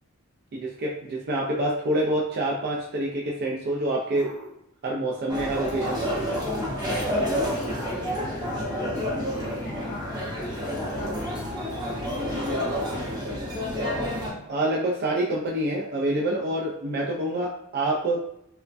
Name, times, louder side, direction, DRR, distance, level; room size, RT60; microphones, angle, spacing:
voice 1, 0.5-4.3 4.8-6.4 14.5-18.2, right 1 dB, 45° right, -2 dB, 0.4 m, -27 dB
sound 1, 4.1-4.5 5.8-6.4 7.5-8.1 9.2-9.8 11.0-11.6 12.7-13.4, right 1 dB, 85° right, 0.8 m, -42 dB
sound 2, 5.3-14.3, equal, 20° right, 0.7 m, -29 dB
voice 2, 7.4-13.7, equal, 20° left, -5 dB, 0.4 m, -41 dB
3.1 x 2.1 x 2.5 m, 0.77 s
head